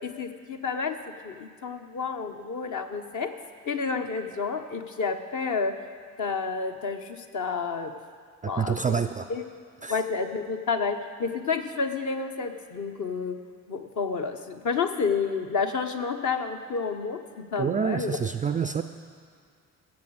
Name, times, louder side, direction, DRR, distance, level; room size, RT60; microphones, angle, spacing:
voice 1, 0.0-1.0 1.2-3.3 3.6-5.7 6.2-7.9 8.4-8.8 9.3-9.4 9.9-13.4 13.7-18.2, left 5 dB, 45° left, 6 dB, 1.1 m, -30 dB
voice 2, 8.4-9.3 9.8-10.0 17.6-18.8, right 7 dB, 20° right, 10 dB, 0.4 m, -27 dB
15.5 x 7.1 x 6.5 m, 2.2 s
figure-of-eight pair, 45°, 42 cm